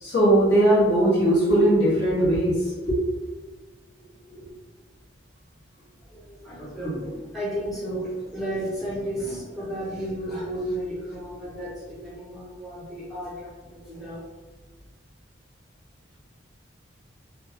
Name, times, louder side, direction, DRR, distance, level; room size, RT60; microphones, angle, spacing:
voice 1, 0.0-2.5 2.9-3.0 4.3-4.4, right 1 dB, 55° left, -8 dB, 1.2 m, -19 dB
voice 2, 6.1-14.2, right 1 dB, ahead, -9 dB, 0.6 m, -33 dB
2.8 x 2.2 x 2.8 m, 1.3 s
head